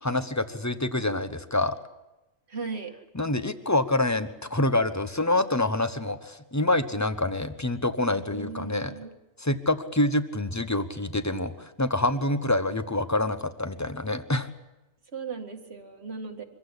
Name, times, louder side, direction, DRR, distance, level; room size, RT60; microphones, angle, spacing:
voice 1, 0.0-1.8 3.1-8.9 9.4-14.5, left 2 dB, 15° left, 11 dB, 1.0 m, -26 dB
voice 2, 2.5-2.9 8.3-9.2 15.1-16.4, right 5 dB, 65° right, 5 dB, 2.2 m, -37 dB
24.0 x 16.0 x 9.8 m, 0.98 s
omnidirectional pair, 1.2 m